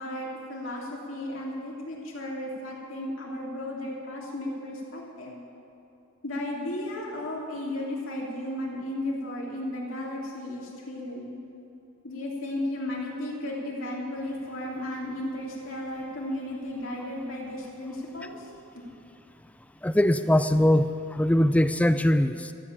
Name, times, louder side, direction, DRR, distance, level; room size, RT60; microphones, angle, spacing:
voice 1, 0.0-5.4 6.2-11.3 12.0-18.5, left 1 dB, 70° left, -3 dB, 3.2 m, -34 dB
voice 2, 19.8-22.5, left 1 dB, 5° left, 11 dB, 0.4 m, -22 dB
14.0 x 8.3 x 8.7 m, 2.8 s
head